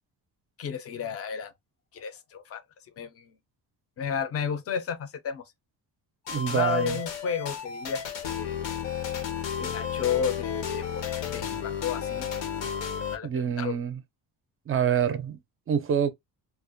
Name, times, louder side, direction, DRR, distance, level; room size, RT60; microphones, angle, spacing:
voice 1, 0.6-1.5 1.9-2.6 3.0-3.3 4.0-5.4 6.3-8.6 9.6-11.0 11.3-12.3 13.1-13.8, left 7 dB, 35° left, 0.4 m, -32 dB
sound 1, 6.3-13.2, left 8 dB, 90° left, 0.8 m, -33 dB
voice 2, 6.3-7.0 13.2-14.0 14.7-15.4 15.7-16.1, right 8 dB, 30° right, 0.4 m, -26 dB
2.3 x 2.1 x 2.5 m
cardioid pair, 145°, 43 cm